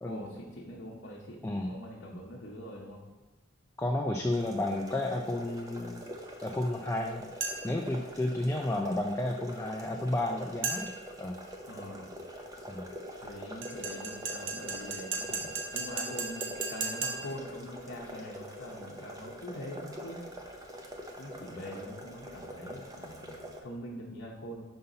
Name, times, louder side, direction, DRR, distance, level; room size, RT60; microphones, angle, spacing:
voice 1, 0.0-3.0 11.7-12.1 13.2-20.2 21.2-24.6, left 1 dB, 65° left, -4 dB, 0.9 m, -43 dB
voice 2, 3.8-6.1 6.4-7.3 7.6-10.9 11.2-11.3 12.7-12.8, left 1 dB, 15° left, 1 dB, 0.4 m, -32 dB
sound 1, 4.3-23.6, equal, 15° right, 0.7 m, -45 dB
sound 2, 7.4-7.9 10.6-11.1 13.6-17.5, right 4 dB, 65° right, 1.1 m, -36 dB
5.6 x 5.5 x 3.9 m, 1.2 s
head